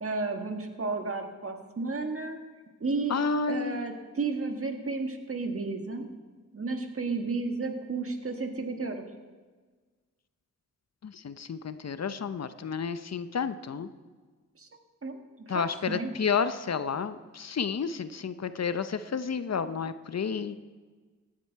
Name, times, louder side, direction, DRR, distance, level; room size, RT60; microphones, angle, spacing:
voice 1, 0.0-2.4 2.8-3.2 3.5-6.1 6.5-9.1 14.6-14.7 15.0-16.1, right 3 dB, 45° right, 5 dB, 1.6 m, -32 dB
voice 2, 3.1-3.8 11.0-13.9 15.5-20.6, left 6 dB, 55° left, 13 dB, 0.6 m, -31 dB
16.5 x 10.5 x 4.6 m, 1.4 s
cardioid pair, 60°, 31 cm